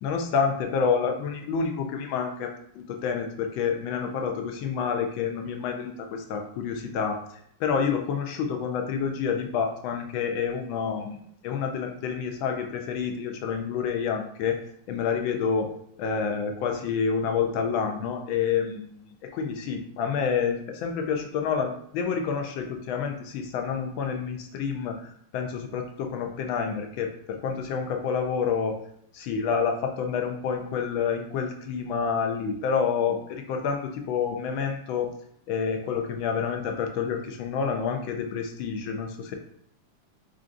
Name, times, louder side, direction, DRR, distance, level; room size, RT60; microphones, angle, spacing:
voice 1, 0.0-7.2 7.6-11.2 11.4-14.6 14.9-15.7 16.0-28.8 29.1-35.1 35.5-39.3, left 6 dB, 85° left, 4 dB, 1.4 m, -28 dB
5.8 x 2.5 x 2.5 m, 0.67 s
omnidirectional pair, 2.1 m